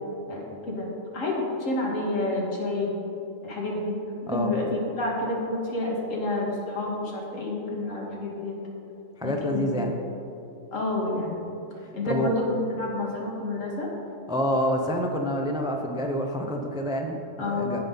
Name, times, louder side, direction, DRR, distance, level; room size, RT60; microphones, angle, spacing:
voice 1, 0.3-3.0 3.4-4.0 4.2-8.6 9.2-9.7 10.7-11.4 11.9-13.9 17.4-17.8, left 2 dB, 75° left, -3 dB, 2.1 m, -29 dB
voice 2, 9.2-9.9 12.0-12.3 14.3-17.8, equal, 5° right, 3 dB, 0.3 m, -27 dB
15.5 x 5.5 x 3.9 m, 3.0 s
omnidirectional pair, 1.3 m